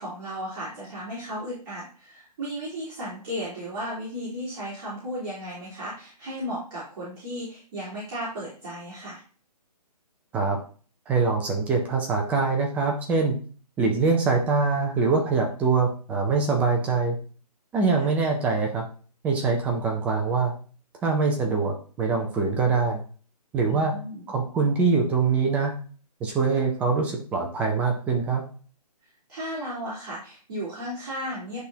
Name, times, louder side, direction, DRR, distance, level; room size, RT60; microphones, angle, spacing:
voice 1, 0.0-9.2 17.9-18.0 23.7-24.3 29.3-31.6, equal, 35° right, -10 dB, 3.2 m, -35 dB
voice 2, 11.1-13.4 13.8-17.2 17.7-18.8 19.2-20.5 21.0-23.0 23.5-24.0 24.3-25.7 26.2-28.4, right 4 dB, 5° right, 1 dB, 0.4 m, -23 dB
10.5 x 3.5 x 2.8 m, 0.41 s
hypercardioid pair, 155°, 21 cm